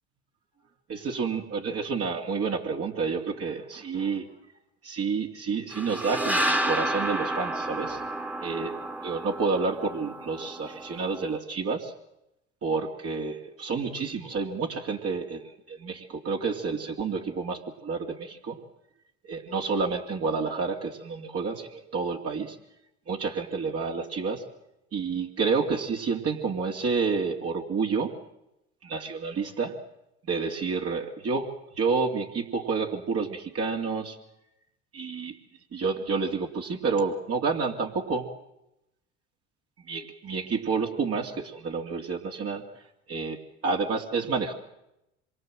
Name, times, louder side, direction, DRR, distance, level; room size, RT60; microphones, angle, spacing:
voice 1, 0.9-4.3 4.8-8.0 8.4-11.9 12.6-18.6 19.2-22.6 23.1-24.5 24.9-28.2 28.8-29.8 30.2-34.2 34.9-35.4 35.7-38.3 39.8-42.8 43.1-44.5, right 4 dB, 45° right, 1 dB, 2.7 m, -29 dB
sound 1, 5.7-11.4, right 1 dB, 5° right, 1.9 m, -31 dB
26.5 x 23.0 x 7.7 m, 0.88 s
hypercardioid pair, 70°, 33 cm